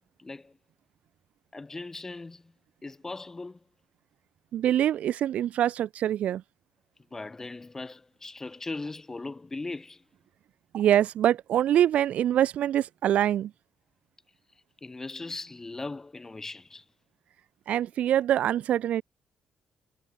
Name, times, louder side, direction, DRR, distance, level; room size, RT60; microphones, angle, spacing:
voice 1, 0.2-0.6 1.5-2.5 2.8-3.6 7.1-10.0 14.8-16.8, left 3 dB, 20° left, 1.0 m, -39 dB
voice 2, 4.5-6.4 10.7-13.5 17.7-19.0, right 11 dB, 65° right, 0.3 m, -24 dB
cardioid pair, 105°, 2 cm